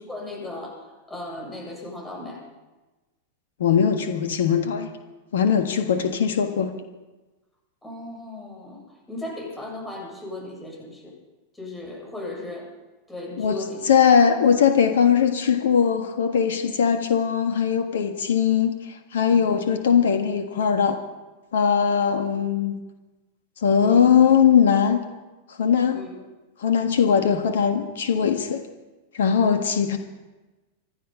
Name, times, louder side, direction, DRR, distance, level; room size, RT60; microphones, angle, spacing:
voice 1, 0.1-2.4 7.8-8.8 9.1-11.1 11.5-12.7 13.1-13.8 23.8-24.1 25.9-26.1, left 2 dB, 10° left, -2 dB, 7.8 m, -36 dB
voice 2, 3.6-4.9 5.3-6.7 13.4-21.0 21.5-22.8 23.6-25.0 25.5-26.0 26.6-28.6 29.1-30.0, left 7 dB, 60° left, 7 dB, 1.5 m, -20 dB
26.0 x 10.5 x 5.4 m, 1.2 s
figure-of-eight pair, 90°, 0 cm